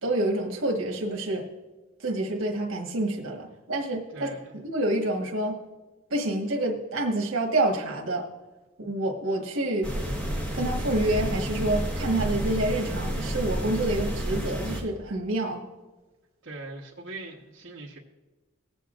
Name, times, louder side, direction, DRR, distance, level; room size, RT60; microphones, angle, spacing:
voice 1, 0.0-1.5 2.0-5.6 6.1-8.3 8.8-9.9 10.5-15.6, right 1 dB, 80° right, 1 dB, 1.5 m, -28 dB
voice 2, 4.1-4.6 16.4-18.0, right 2 dB, 60° right, -3 dB, 1.3 m, -41 dB
sound 1, 9.8-14.8, equal, 5° left, 1.5 m, -30 dB
20.5 x 8.0 x 2.5 m, 1.2 s
head